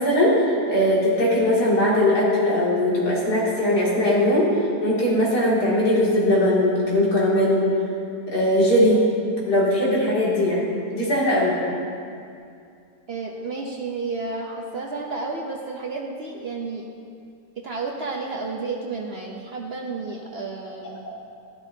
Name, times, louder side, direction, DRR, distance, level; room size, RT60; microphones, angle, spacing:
voice 1, 0.0-4.5 4.8-7.7 8.3-9.0 9.5-10.7 10.9-11.5, left 1 dB, 70° left, -6 dB, 2.9 m, -20 dB
voice 2, 13.1-16.9 17.6-21.0, right 3 dB, 55° right, 0 dB, 0.7 m, -31 dB
13.0 x 11.5 x 2.7 m, 2.4 s
omnidirectional pair, 1.8 m